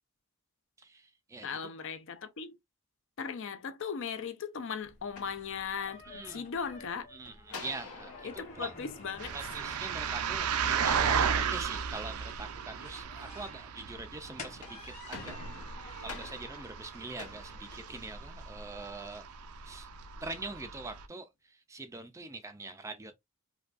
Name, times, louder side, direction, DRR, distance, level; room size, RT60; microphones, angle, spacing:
voice 1, 0.8-1.5 6.0-6.4 7.1-8.7 9.3-15.4 15.7-19.2 19.6-19.9 20.2-23.1, right 3 dB, 15° right, 0.3 m, -43 dB
voice 2, 1.4-2.6 3.2-6.0 6.3-7.1 8.2-9.3, left 6 dB, 55° left, 0.5 m, -37 dB
sound 1, 4.8-18.7, left 2 dB, 30° left, 1.2 m, -53 dB
sound 2, 5.0-6.2 7.5-10.0 14.4-18.4, left 4 dB, 85° left, 1.0 m, -48 dB
sound 3, 9.2-21.0, right 7 dB, 85° right, 0.5 m, -35 dB
5.0 x 2.3 x 2.4 m
head